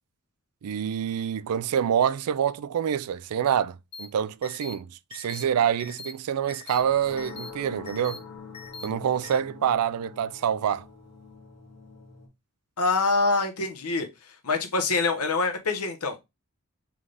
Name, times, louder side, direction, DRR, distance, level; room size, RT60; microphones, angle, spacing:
voice 1, 0.6-8.2 8.8-10.9, right 8 dB, 85° right, 0.3 m, -26 dB
sound 1, 3.9-4.1 4.4-4.7 5.1-5.4 5.8-6.1 6.5-6.8 7.2-7.5 7.9-8.2 8.5-8.9 9.2-9.4, left 4 dB, 25° left, 0.6 m, -41 dB
sound 2, 6.7-12.3, left 4 dB, 50° left, 1.8 m, -45 dB
voice 2, 12.8-14.1 14.4-16.2, left 3 dB, 90° left, 1.0 m, -25 dB
3.8 x 3.6 x 3.3 m
head